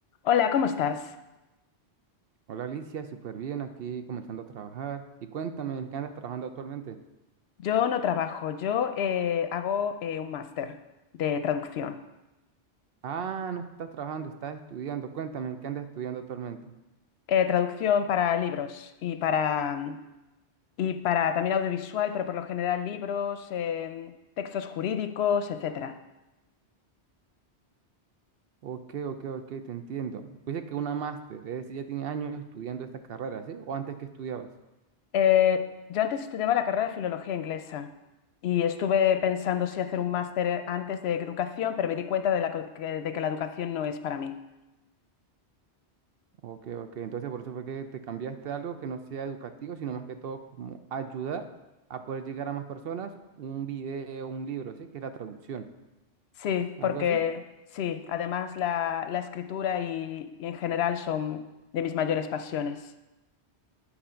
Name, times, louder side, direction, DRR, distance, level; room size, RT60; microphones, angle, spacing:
voice 1, 0.2-1.2 7.6-10.7 11.1-12.0 17.3-20.0 20.8-26.0 35.1-37.9 38.4-44.4 56.4-57.4 57.7-61.4 61.7-62.9, left 8 dB, 70° left, 10 dB, 0.8 m, -28 dB
voice 2, 2.5-7.0 13.0-16.7 28.6-34.5 46.4-51.4 51.9-53.1 53.4-55.6 56.8-57.2, right 7 dB, 65° right, 9 dB, 0.7 m, -36 dB
10.0 x 4.2 x 5.6 m, 1.0 s
omnidirectional pair, 1.1 m